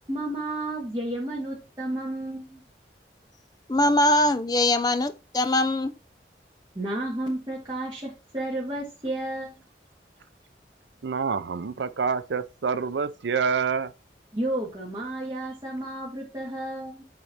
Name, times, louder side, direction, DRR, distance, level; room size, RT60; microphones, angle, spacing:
voice 1, 0.1-2.6 6.7-9.6 14.3-17.0, right 1 dB, 25° right, 1.6 m, -32 dB
voice 2, 3.7-5.9, left 1 dB, 20° left, 0.5 m, -22 dB
voice 3, 11.0-13.9, right 5 dB, 85° right, 0.5 m, -27 dB
7.6 x 3.2 x 4.2 m
head